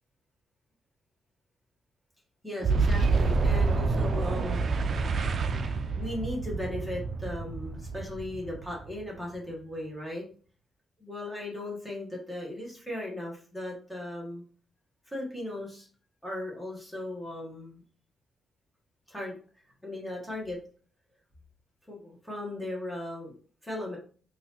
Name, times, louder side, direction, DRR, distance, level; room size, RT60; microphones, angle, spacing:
voice 1, 2.4-4.6 5.9-10.2 11.0-14.4 15.1-15.9 16.2-17.8 19.1-19.3 19.8-20.6 21.9-23.3 23.6-24.0, left 1 dB, ahead, -3 dB, 1.2 m, -37 dB
Boom, 2.6-9.2, right 4 dB, 45° right, 0.3 m, -28 dB
3.9 x 2.6 x 2.8 m, 0.42 s
cardioid pair, 145°, 0 cm